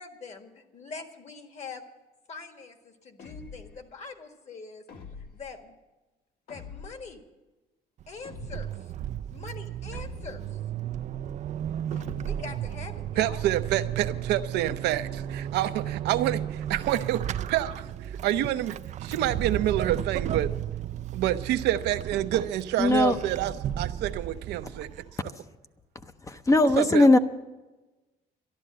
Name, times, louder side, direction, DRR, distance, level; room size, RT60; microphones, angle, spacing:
voice 1, 0.0-1.8 2.3-4.8 5.3-5.7 6.5-7.2 8.1-8.9 9.3-10.6 12.2-13.4 15.8-15.9, left 4 dB, 40° left, 6 dB, 1.7 m, -43 dB
sound 1, 3.2-3.9 4.9-5.5 6.5-7.2 8.2-8.9 9.9-10.6 11.9-12.6, left 5 dB, 65° left, 1.5 m, -45 dB
Vehicle / Accelerating revving vroom / Squeak, 8.0-25.2, right 11 dB, 45° right, 0.4 m, -34 dB
voice 2, 13.2-17.7 18.0-20.5 21.1-25.3 26.8-27.1, right 13 dB, 85° right, 10 dB, 0.7 m, -28 dB
voice 3, 22.8-23.2 26.3-27.2, left 2 dB, 20° left, 9 dB, 0.6 m, -19 dB
13.0 x 11.0 x 7.6 m, 1.1 s
cardioid pair, 110°, 17 cm